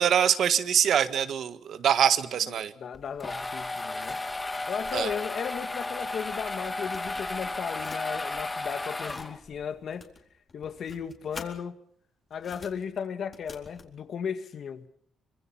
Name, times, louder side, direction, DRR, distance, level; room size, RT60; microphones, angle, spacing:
voice 1, 0.0-2.7 4.9-5.1, right 9 dB, 70° right, 1.5 m, -24 dB
voice 2, 2.5-4.2 4.5-10.1 10.5-11.8 12.3-14.9, left 7 dB, 60° left, 2.0 m, -35 dB
sound 1, 2.9-9.6, left 2 dB, 20° left, 1.6 m, -34 dB
sound 2, 4.1-6.4 6.6-8.0 8.7-9.3 9.9-11.5 12.3-13.9, left 4 dB, 35° left, 4.1 m, -48 dB
25.5 x 25.0 x 5.9 m
cardioid pair, 105°, 0 cm